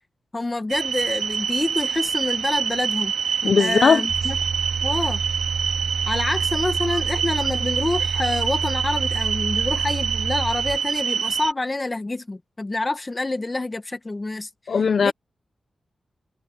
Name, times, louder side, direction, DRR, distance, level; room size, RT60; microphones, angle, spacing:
voice 1, 0.3-4.4 4.8-5.2 6.1-14.5 15.0-15.1, left 2 dB, 25° left, 1.9 m, -27 dB
sound 1, 0.7-11.5, right 7 dB, 90° right, 2.1 m, -26 dB
voice 2, 3.4-4.0 14.7-15.1, left 5 dB, 60° left, 0.6 m, -18 dB
sound 2, 4.1-10.8, right 5 dB, 55° right, 4.1 m, -30 dB
wide cardioid pair, 115°, 0 cm